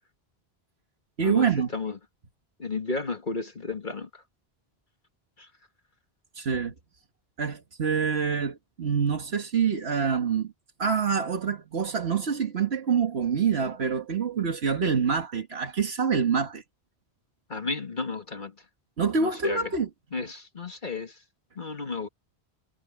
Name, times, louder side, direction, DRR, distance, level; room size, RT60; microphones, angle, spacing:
voice 1, 1.2-1.7 6.4-6.7 7.4-10.5 10.8-16.6 19.0-19.9 20.2-20.3, right 6 dB, 75° right, 1.8 m, -26 dB
voice 2, 2.6-4.2 5.4-5.5 17.5-18.5 19.2-19.7 20.1-21.2 21.6-22.1, left 3 dB, 50° left, 2.0 m, -33 dB
omnidirectional pair, 1.1 m